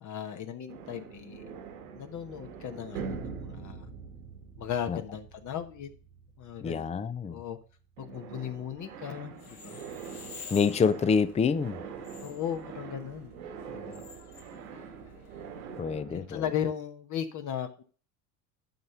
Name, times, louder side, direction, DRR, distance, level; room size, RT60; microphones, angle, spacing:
voice 1, 0.0-1.5 1.9-3.9 4.6-5.9 6.4-6.9 7.3-7.6 8.0-9.8 12.2-13.4 13.7-14.0 16.1-17.8, left 9 dB, 45° left, 1.2 m, -36 dB
sound 1, 0.7-7.6 8.0-16.3, right 6 dB, 80° right, 1.8 m, -44 dB
voice 2, 6.6-7.4 10.5-11.8 15.8-16.5, left 5 dB, 15° left, 0.5 m, -27 dB
sound 2, 9.3-15.8, left 5 dB, 85° left, 1.9 m, -50 dB
9.3 x 5.7 x 5.4 m
hypercardioid pair, 70°, 42 cm